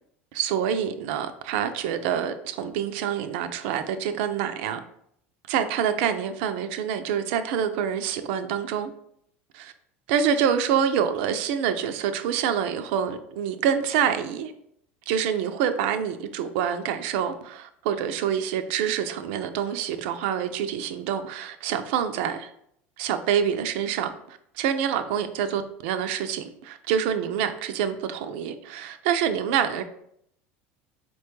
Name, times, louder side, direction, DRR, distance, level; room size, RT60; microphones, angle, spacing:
voice 1, 0.3-4.8 5.5-8.9 9.5-9.7 10.1-14.5 15.1-22.5 23.0-29.8, right 8 dB, 65° right, 0.3 m, -26 dB
4.2 x 2.2 x 3.0 m
hypercardioid pair, 85°, 7 cm